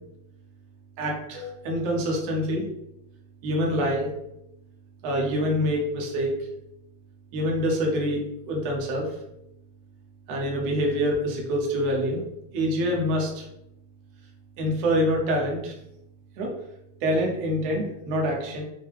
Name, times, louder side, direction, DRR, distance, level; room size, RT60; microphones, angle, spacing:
voice 1, 1.0-2.6 3.4-4.1 5.0-6.3 7.3-8.2 8.5-9.1 10.3-12.2 12.5-13.4 14.6-15.7 16.4-16.5 17.0-18.6, equal, 65° right, -1 dB, 1.9 m, -25 dB
6.5 x 2.2 x 3.4 m, 0.82 s
omnidirectional pair, 3.4 m